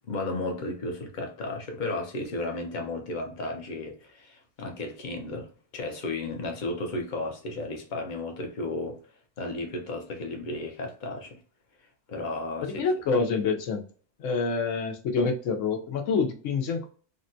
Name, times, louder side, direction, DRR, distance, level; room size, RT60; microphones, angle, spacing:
voice 1, 0.1-9.0 9.4-11.4 12.1-12.8, left 2 dB, 45° left, 0.7 m, -34 dB
voice 2, 12.6-13.8 14.2-16.9, left 4 dB, 75° left, 1.0 m, -27 dB
3.6 x 2.1 x 2.6 m
omnidirectional pair, 1.3 m